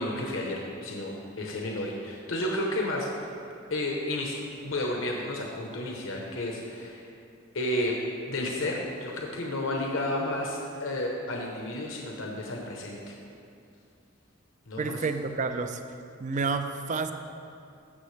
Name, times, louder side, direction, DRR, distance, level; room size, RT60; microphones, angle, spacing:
voice 1, 0.0-3.1 3.7-7.1 7.5-8.0 8.3-13.1 14.7-15.0, left 1 dB, 75° left, -1 dB, 1.0 m, -32 dB
voice 2, 14.8-15.8 16.2-17.1, right 4 dB, 40° right, 8 dB, 0.4 m, -29 dB
15.0 x 6.4 x 3.3 m, 2.6 s
head